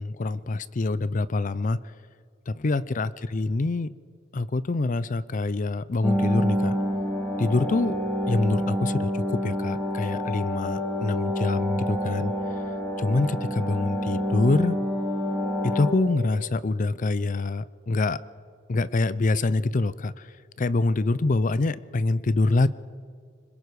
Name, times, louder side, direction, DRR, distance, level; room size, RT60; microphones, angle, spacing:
voice 1, 0.0-1.8 2.5-3.9 4.3-6.8 7.4-8.0 8.3-12.3 13.0-14.8 15.6-18.2 18.7-20.3 20.6-22.7, left 3 dB, 40° left, 17 dB, 0.5 m, -25 dB
sound 1, 6.0-15.9, equal, ahead, 2.5 m, -28 dB
25.0 x 22.0 x 4.8 m, 2.1 s
head